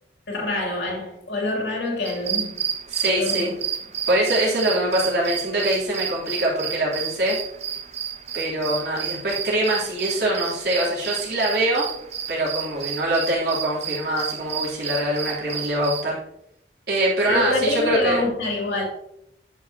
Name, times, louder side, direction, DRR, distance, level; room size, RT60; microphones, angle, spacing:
voice 1, 0.3-2.7 3.1-3.5 17.3-18.8, left 2 dB, 75° left, 3.0 m, -26 dB
sound 1, 2.0-16.0, right 8 dB, 35° right, 0.6 m, -31 dB
voice 2, 2.9-3.5 4.1-7.4 8.3-11.9 12.3-16.2 16.9-18.2, right 1 dB, 60° right, 3.4 m, -23 dB
11.0 x 5.9 x 3.0 m
head